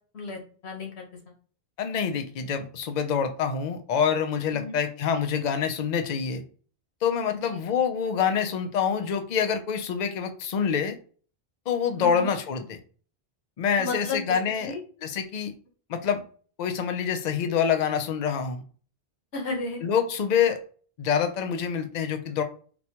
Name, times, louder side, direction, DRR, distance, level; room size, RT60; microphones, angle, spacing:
voice 1, 0.1-1.1 4.5-4.8 7.3-7.6 12.0-12.3 13.8-14.3 14.6-14.8 19.3-19.8, left 3 dB, 85° left, 1 dB, 1.3 m, -33 dB
voice 2, 1.8-6.4 7.0-11.0 11.7-12.8 13.6-14.7 15.0-15.5 15.9-16.2 16.6-18.6 19.8-20.6 21.0-22.4, left 7 dB, 50° left, 7 dB, 0.6 m, -26 dB
4.2 x 2.2 x 2.8 m, 0.42 s
omnidirectional pair, 1.1 m